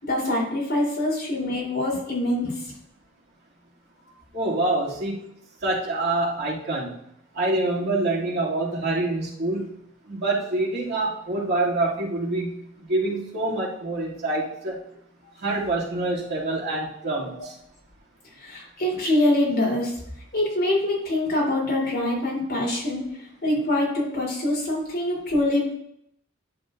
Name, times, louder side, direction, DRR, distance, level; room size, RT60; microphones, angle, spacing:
voice 1, 0.0-2.6 18.4-20.0 20.3-23.0 23.4-25.7, left 1 dB, 50° left, -4 dB, 3.6 m, -24 dB
voice 2, 4.3-5.2 5.6-7.0 7.3-9.7 10.1-14.8 15.4-17.5, right 2 dB, 50° right, -6 dB, 2.7 m, -26 dB
11.0 x 7.1 x 2.6 m, 0.73 s
head